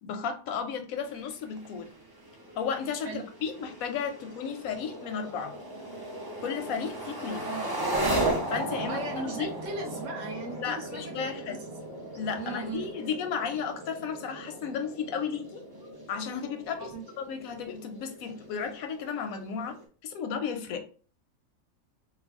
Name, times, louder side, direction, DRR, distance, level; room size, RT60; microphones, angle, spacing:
voice 1, 0.0-1.9 2.6-5.5 6.4-7.4 8.5-9.0 9.4-9.5 10.4-11.6 12.1-15.6 16.1-16.9 17.2-19.8 20.0-20.8, left 6 dB, 90° left, 7 dB, 1.0 m, -34 dB
sound 1, 1.0-19.8, right 1 dB, 30° right, 0.4 m, -37 dB
voice 2, 7.4-8.2 8.9-11.6 12.4-13.1 16.8-17.0, right 3 dB, 65° right, 3 dB, 1.1 m, -38 dB
3.2 x 2.2 x 3.5 m, 0.40 s
omnidirectional pair, 1.4 m